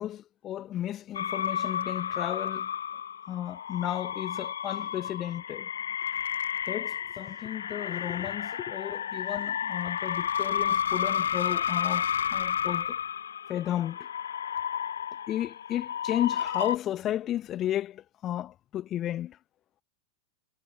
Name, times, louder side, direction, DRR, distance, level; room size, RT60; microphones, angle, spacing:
voice 1, 0.0-2.7 3.3-5.7 6.7-12.1 12.3-12.9 13.5-14.0 15.3-19.4, left 12 dB, 40° left, 2.0 m, -33 dB
sound 1, 1.1-16.8, left 8 dB, 90° left, 5.9 m, -32 dB
hypercardioid pair, 105°, 0 cm